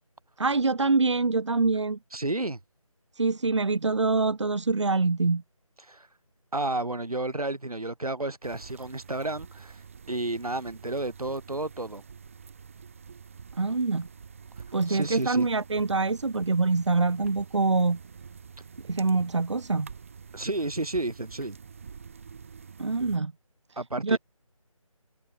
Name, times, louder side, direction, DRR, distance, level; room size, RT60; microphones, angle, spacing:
voice 1, 0.4-2.0 3.2-5.4 13.6-14.1 14.7-18.0 18.9-19.9 22.8-23.3 24.0-24.2, right 3 dB, 55° right, 0.9 m, -25 dB
voice 2, 2.1-2.6 5.8-6.1 6.5-9.8 10.1-12.0 14.9-15.5 20.3-21.6 23.8-24.2, right 2 dB, 90° right, 4.6 m, -31 dB
sound 1, 8.4-23.2, right 6 dB, 25° right, 4.2 m, -47 dB
figure-of-eight pair, 175°, 18 cm